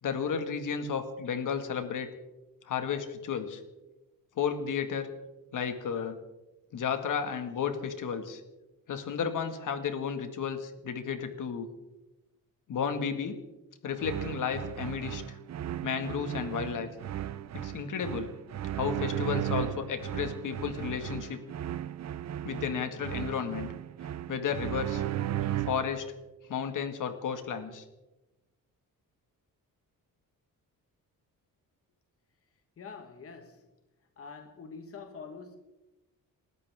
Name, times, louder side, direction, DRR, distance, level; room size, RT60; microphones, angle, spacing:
voice 1, 0.0-2.1 2.7-3.6 4.4-5.1 5.5-6.2 6.7-8.4 8.9-11.7 12.7-13.4 13.8-15.2 15.8-16.9 17.5-18.3 18.7-21.4 22.4-23.7 24.3-25.0 25.6-26.1 26.5-27.8, left 7 dB, 65° left, 7 dB, 2.0 m, -33 dB
sound 1, 14.0-26.0, right 12 dB, 50° right, 0.6 m, -35 dB
voice 2, 32.8-33.7 34.2-35.6, left 5 dB, 40° left, 5 dB, 1.6 m, -45 dB
29.5 x 13.5 x 3.6 m, 1.1 s
wide cardioid pair, 160°, 34 cm